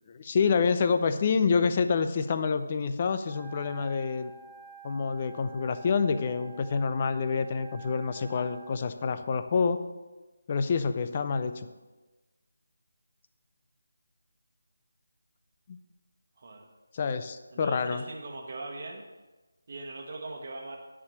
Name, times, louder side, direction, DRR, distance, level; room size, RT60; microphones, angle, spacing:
voice 1, 0.1-4.3 4.8-9.8 10.5-11.7 15.7-15.8 16.9-18.0, left 5 dB, 30° left, 10 dB, 0.6 m, -27 dB
Wind instrument woodwind instrument, 3.2-8.8, right 5 dB, 10° right, 0.7 m, -50 dB
voice 2, 16.4-16.7 17.5-19.0 19.7-20.8, right 2 dB, 45° right, -1 dB, 1.2 m, -40 dB
10.0 x 4.8 x 7.0 m, 1.2 s
figure-of-eight pair, 160°, 0 cm